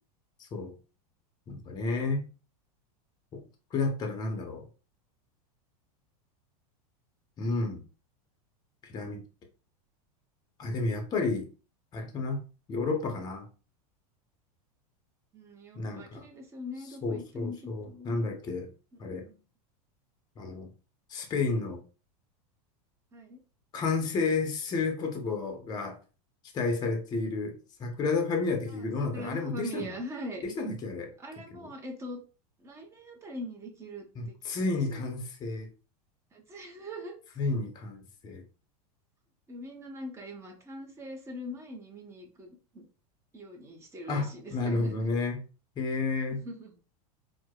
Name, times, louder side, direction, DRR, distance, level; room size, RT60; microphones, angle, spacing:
voice 1, 1.5-2.2 3.7-4.6 7.4-7.8 8.9-9.2 10.6-11.5 11.9-13.5 15.8-16.2 17.0-18.7 19.0-19.2 20.4-20.7 21.1-21.8 23.7-26.0 26.5-29.9 30.4-31.1 31.5-31.7 34.2-35.7 37.4-38.4 44.1-45.4 45.8-46.4, left 3 dB, 20° left, 0.7 m, -31 dB
voice 2, 15.3-18.3 19.0-19.4 23.1-23.4 28.7-30.4 31.2-32.2 32.6-35.1 36.3-37.1 39.5-42.9 43.3-45.0 46.3-46.8, equal, 15° right, 0.7 m, -42 dB
4.5 x 2.1 x 2.2 m
supercardioid pair, 140°, 19 cm